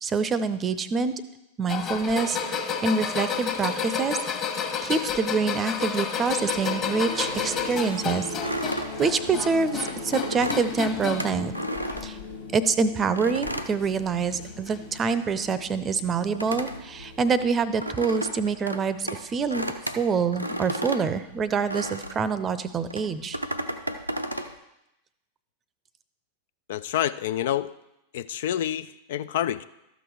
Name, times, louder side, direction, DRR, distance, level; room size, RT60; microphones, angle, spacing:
voice 1, 0.0-1.1 1.6-4.2 4.8-8.3 8.7-11.5 12.0-12.2 12.5-23.4, right 5 dB, 25° right, 14 dB, 0.6 m, -26 dB
sound 1, 1.7-11.4 11.7-12.3 13.5-13.6 14.7-14.8, left 6 dB, 30° left, 1.3 m, -31 dB
sound 2, 6.3-17.8, left 3 dB, 75° left, 1.2 m, -40 dB
sound 3, 8.4-12.7 13.2-14.6 14.9-22.3 22.9-24.5, equal, 90° right, 0.6 m, -34 dB
voice 2, 26.7-27.7 28.1-29.6, left 11 dB, 55° left, 14 dB, 0.3 m, -28 dB
12.5 x 6.2 x 4.8 m, 0.88 s
figure-of-eight pair, 90°, 0 cm